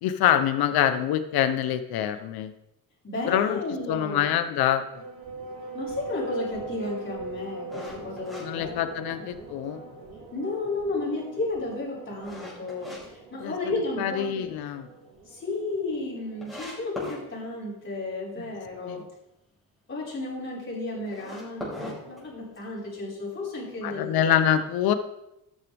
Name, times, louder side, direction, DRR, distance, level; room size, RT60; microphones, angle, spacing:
voice 1, 0.0-2.5 3.3-3.6 3.9-4.8 8.4-9.8 13.4-13.5 14.0-14.9 18.8-19.0 23.8-24.9, left 10 dB, 90° left, 10 dB, 0.8 m, -25 dB
voice 2, 3.0-4.4 5.7-9.2 10.3-14.5 15.2-19.1 19.9-24.4, left 2 dB, 35° left, -6 dB, 4.8 m, -33 dB
sound 1, 4.8-16.7, right 3 dB, 85° right, 3.3 m, -41 dB
sound 2, 7.7-9.4 9.8-9.9 10.5-13.0 13.4-14.1 14.5-14.6 15.0-15.1 15.2-15.3 15.9-16.0 16.4-17.2 21.0-22.8, equal, ahead, 4.9 m, -40 dB
13.0 x 9.3 x 3.5 m, 0.89 s
cardioid pair, 145°, 36 cm